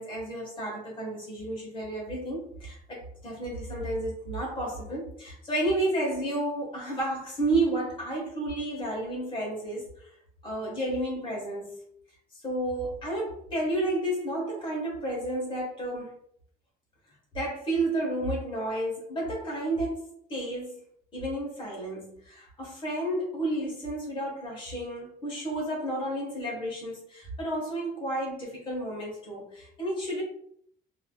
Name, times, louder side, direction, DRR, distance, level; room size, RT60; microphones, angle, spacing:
voice 1, 0.0-10.1 10.4-11.7 12.4-16.1 17.3-20.8 21.1-30.2, right 1 dB, 30° left, -3 dB, 1.3 m, -31 dB
3.4 x 2.8 x 2.2 m, 0.66 s
cardioid pair, 160°, 16 cm